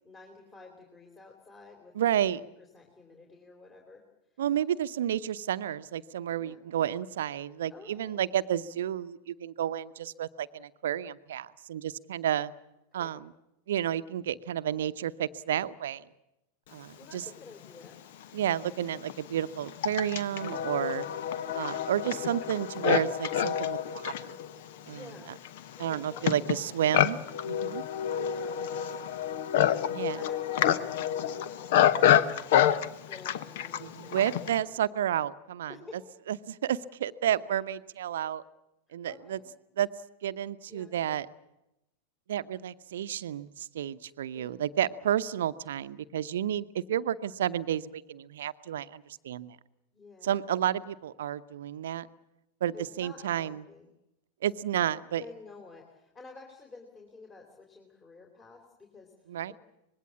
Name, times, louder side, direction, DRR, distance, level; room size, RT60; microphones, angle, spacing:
voice 1, 0.0-4.0 4.3-4.4 6.4-6.6 7.7-8.2 12.9-13.2 17.0-18.0 24.9-25.3 25.7-26.9 28.1-29.4 29.7-32.6 33.1-34.9 35.7-36.0 39.0-39.5 40.7-40.9 44.3-44.5 49.9-50.5 52.7-53.9 55.2-59.5, left 3 dB, 20° left, 2 dB, 3.7 m, -51 dB
voice 2, 2.0-2.4 4.4-12.5 12.9-13.3 13.7-16.1 16.7-17.2 18.3-21.1 21.5-24.4 24.9-25.0 25.8-27.2 27.4-27.8 30.0-30.2 33.8-35.7 36.3-38.4 38.9-39.4 39.8-39.9 40.2-41.3 42.3-49.6 50.2-52.1 52.6-53.6 54.4-55.2 59.3-59.5, right 10 dB, 60° right, 14 dB, 0.8 m, -31 dB
Livestock farm animals working animals, 17.8-17.9 18.7-34.6, left 10 dB, 55° left, 1.0 m, -28 dB
25.0 x 21.0 x 7.4 m, 0.89 s
figure-of-eight pair, 90°, 0 cm